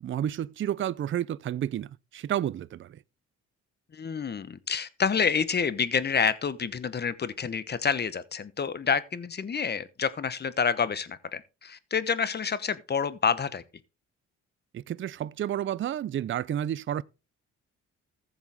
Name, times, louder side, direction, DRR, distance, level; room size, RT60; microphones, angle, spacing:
voice 1, 0.0-3.0 14.7-17.0, right 11 dB, 40° right, 0.5 m, -31 dB
voice 2, 3.9-13.6, left 6 dB, 35° left, 1.0 m, -28 dB
14.5 x 7.1 x 3.5 m
cardioid pair, 90°, 30 cm